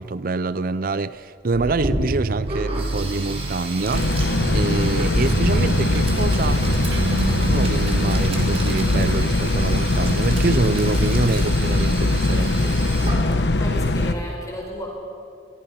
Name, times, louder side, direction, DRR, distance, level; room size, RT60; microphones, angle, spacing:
voice 1, 0.0-4.1 4.5-6.6 7.5-12.6, right 3 dB, 50° right, 0.6 m, -26 dB
sound 1, 1.5-9.2, right 2 dB, 80° right, 0.9 m, -27 dB
Sink (filling or washing), 1.6-13.6, right 2 dB, 35° right, 4.2 m, -32 dB
sound 2, 3.9-14.1, left 2 dB, 70° left, 1.1 m, -21 dB
voice 2, 13.2-14.9, equal, 20° left, 4.8 m, -34 dB
29.5 x 23.0 x 5.8 m
head